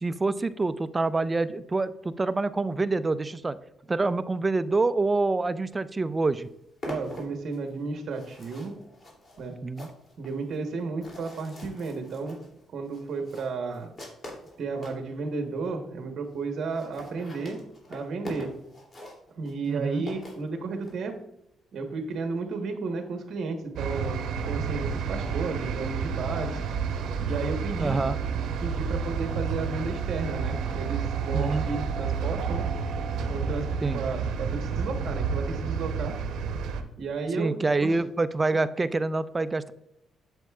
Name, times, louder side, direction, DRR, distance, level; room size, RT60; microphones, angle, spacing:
voice 1, 0.0-3.6 3.9-6.5 9.6-9.9 19.7-20.0 27.8-28.2 31.3-31.7 33.8-34.0 37.4-39.7, right 3 dB, 25° right, 14 dB, 0.4 m, -26 dB
sound 1, 5.9-6.0 6.2-15.1 15.7-15.8 16.0-16.1 16.3-16.4 16.6-21.0, left 1 dB, 35° left, 2.6 m, -44 dB
voice 2, 6.9-8.7 9.4-9.5 10.2-12.4 12.7-13.9 14.6-17.6 17.9-18.5 19.3-21.1 21.7-26.6 27.2-28.0 28.6-32.7 33.3-33.7 33.9-36.1 37.0-37.5 37.8-37.9, right 4 dB, 60° right, 4 dB, 1.0 m, -33 dB
sound 2, 23.8-36.8, right 6 dB, 80° right, 0.8 m, -30 dB
7.9 x 7.4 x 2.3 m, 0.82 s
cardioid pair, 90°, 0 cm